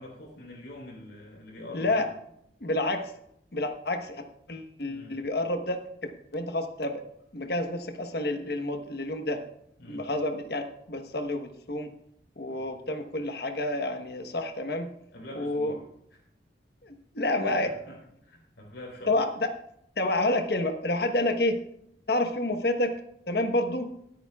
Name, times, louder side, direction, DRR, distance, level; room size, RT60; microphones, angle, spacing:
voice 1, 0.0-2.1 4.9-5.2 9.8-10.1 12.5-12.7 15.1-15.8 16.1-16.2 17.2-19.1, left 1 dB, 85° left, -1 dB, 4.1 m, -45 dB
voice 2, 1.7-2.1 2.6-3.1 3.5-7.0 7.3-9.4 9.9-11.9 12.4-14.9 15.4-15.7 16.8-17.7 19.1-19.5 20.0-21.6 22.1-22.9 23.3-23.9, left 2 dB, 60° left, 6 dB, 1.2 m, -29 dB
22.5 x 9.0 x 2.4 m, 0.74 s
head